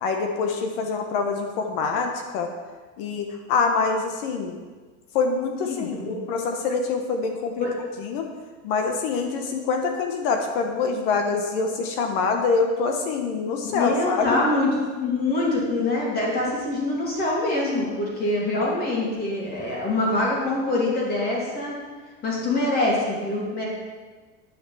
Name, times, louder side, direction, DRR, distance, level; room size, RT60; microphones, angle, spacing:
voice 1, 0.0-2.5 3.0-4.6 5.1-7.7 8.0-8.3 8.6-14.4, left 4 dB, 50° left, 4 dB, 1.2 m, -25 dB
voice 2, 5.6-6.2 7.6-7.7 13.6-14.7 15.0-21.8 22.2-23.6, left 2 dB, 25° left, -4 dB, 2.8 m, -24 dB
10.0 x 5.8 x 7.1 m, 1.4 s
supercardioid pair, 170°, 37 cm